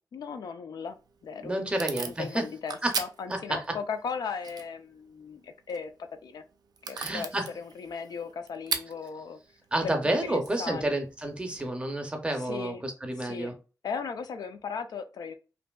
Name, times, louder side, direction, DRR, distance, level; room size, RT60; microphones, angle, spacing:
voice 1, 0.1-1.0 1.2-6.4 6.9-9.4 9.8-11.0 12.3-12.8 13.2-15.4, left 5 dB, 85° left, 0.4 m, -37 dB
Packing tape duct tape / Tearing, 0.9-11.7, right 5 dB, 85° right, 0.4 m, -41 dB
voice 2, 1.4-2.4 2.8-2.9 3.3-3.8 6.9-7.5 9.7-13.5, right 1 dB, 15° right, 0.5 m, -30 dB
2.8 x 2.6 x 2.2 m
wide cardioid pair, 170°, 7 cm